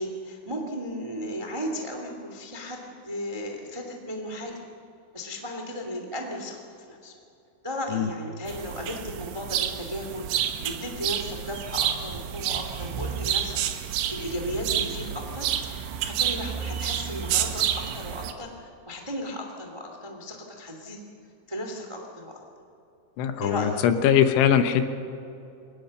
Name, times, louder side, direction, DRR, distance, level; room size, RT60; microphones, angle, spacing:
voice 1, 0.0-4.6 5.1-7.1 7.6-13.6 14.1-15.5 16.0-21.0 21.5-22.4 23.4-23.8, equal, 55° right, 2 dB, 0.3 m, -35 dB
sound 1, 8.5-18.3, right 10 dB, 75° right, 3.1 m, -29 dB
voice 2, 23.2-24.9, left 9 dB, 80° left, 8 dB, 3.5 m, -21 dB
23.0 x 19.0 x 6.6 m, 2.7 s
omnidirectional pair, 5.6 m